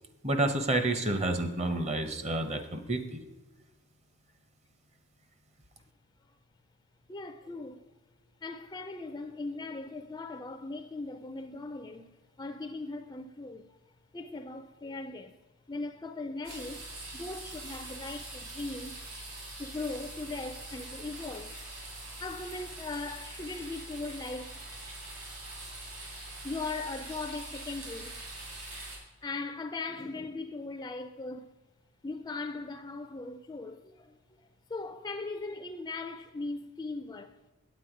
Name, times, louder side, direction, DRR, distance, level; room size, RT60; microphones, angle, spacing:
voice 1, 0.2-3.2, right 2 dB, 30° right, 0.8 m, -29 dB
voice 2, 7.1-7.8 8.4-13.7 14.1-15.4 15.7-16.9 17.1-19.0 19.6-21.6 22.2-24.6 26.4-28.2 29.2-31.5 32.0-34.4 34.7-37.3, left 3 dB, 20° left, 0.4 m, -39 dB
sound 1, 16.4-29.0, right 2 dB, 65° right, 3.5 m, -43 dB
8.4 x 8.3 x 4.9 m
head